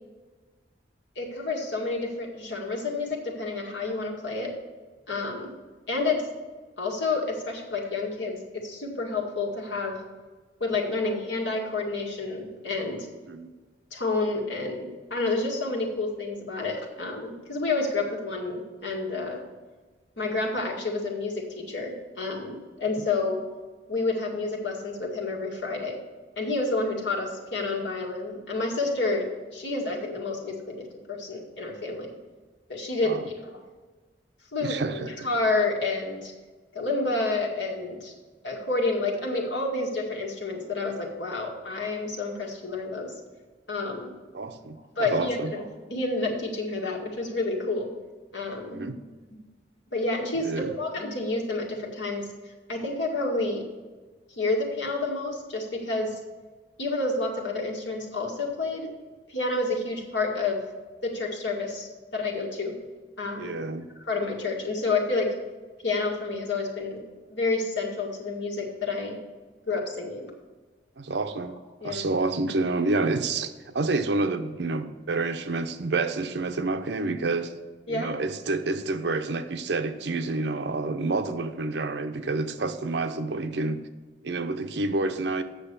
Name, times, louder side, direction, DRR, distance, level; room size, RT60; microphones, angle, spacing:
voice 1, 1.2-4.5 5.1-5.5 5.9-6.2 6.8-10.0 10.6-13.1 13.9-19.4 20.2-23.4 23.9-26.0 26.4-29.2 29.5-32.1 32.7-33.6 34.5-36.3 36.7-38.1 38.4-43.1 43.7-44.1 44.9-45.6 45.9-47.9 48.3-48.8 49.9-52.3 52.7-53.6 54.4-56.2 56.8-58.9 59.3-60.6 61.0-62.7 63.2-63.5 64.1-65.3 65.8-67.0 67.3-69.2 69.7-70.3 71.8-72.1 77.9-78.1, left 3 dB, 85° left, 2.0 m, -29 dB
voice 2, 34.6-35.1 44.3-45.5 48.7-49.0 50.4-50.7 63.4-63.9 71.0-71.6 71.8-77.5 77.9-83.8 84.2-85.4, right 3 dB, 70° right, 0.7 m, -28 dB
7.9 x 6.4 x 6.8 m
head